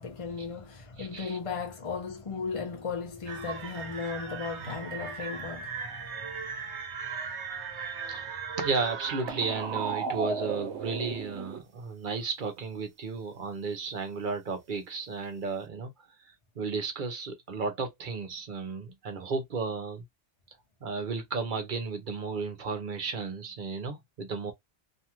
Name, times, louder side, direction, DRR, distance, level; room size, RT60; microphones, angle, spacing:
voice 1, 0.0-6.6, left 5 dB, 35° left, 0.6 m, -36 dB
voice 2, 1.0-1.4 8.1-15.9 16.6-20.0 20.8-24.5, right 4 dB, 50° right, 0.8 m, -33 dB
sound 1, 3.3-11.6, right 5 dB, 90° right, 1.0 m, -36 dB
2.7 x 2.4 x 2.9 m
omnidirectional pair, 1.1 m